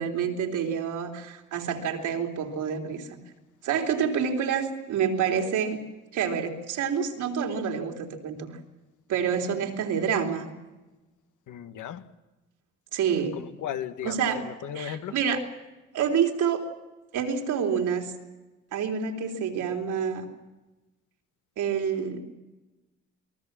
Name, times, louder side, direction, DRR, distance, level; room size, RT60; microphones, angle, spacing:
voice 1, 0.0-3.2 3.6-5.8 6.1-8.6 9.1-10.5 12.9-13.4 14.0-14.5 14.7-15.4 15.9-16.7 17.1-18.1 18.7-20.2 21.6-22.2, right 7 dB, 80° right, 3 dB, 3.7 m, -28 dB
voice 2, 11.5-12.0 13.4-14.1 14.4-15.1, left 10 dB, 80° left, 9 dB, 1.6 m, -35 dB
28.0 x 20.0 x 7.5 m, 1.1 s
cardioid pair, 90°, 30 cm